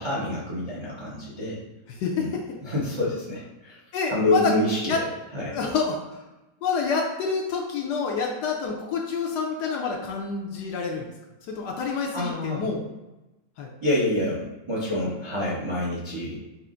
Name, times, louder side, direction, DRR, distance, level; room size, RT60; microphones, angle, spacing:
voice 1, 0.0-1.6 2.2-2.3 2.6-3.8 4.1-5.1 5.3-5.5 12.1-12.6 13.8-16.4, left 1 dB, 40° right, -7 dB, 0.4 m, -27 dB
voice 2, 1.9-2.4 3.9-4.5 4.9-5.0 5.5-6.0 6.6-11.1 11.5-12.8 13.6-13.7, left 5 dB, 70° left, 0 dB, 1.0 m, -27 dB
5.5 x 2.0 x 3.7 m, 1.0 s
omnidirectional pair, 2.1 m